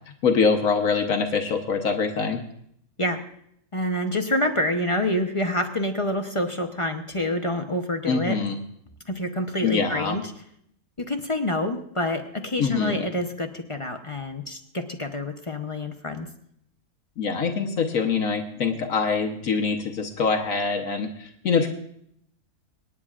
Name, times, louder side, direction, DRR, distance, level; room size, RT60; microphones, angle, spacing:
voice 1, 0.2-2.4 8.1-8.6 9.6-10.2 12.6-13.1 17.2-21.7, left 5 dB, 70° left, 4 dB, 1.4 m, -24 dB
voice 2, 3.7-8.4 9.1-10.3 11.0-16.3, left 1 dB, 30° left, 5 dB, 0.7 m, -27 dB
26.0 x 9.8 x 2.5 m, 0.70 s
omnidirectional pair, 1.5 m